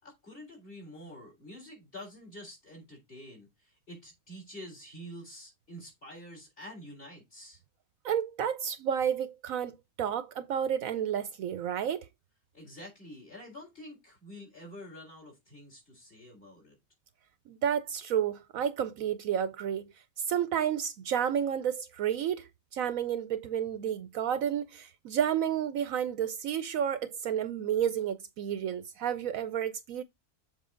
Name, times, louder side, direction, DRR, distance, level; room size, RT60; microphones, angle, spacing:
voice 1, 0.0-7.6 12.5-16.7, equal, 35° left, 4.0 m, -47 dB
voice 2, 8.0-12.1 17.5-19.9 20.3-30.0, right 9 dB, 70° right, 1.0 m, -31 dB
7.3 x 4.4 x 3.7 m
omnidirectional pair, 1.6 m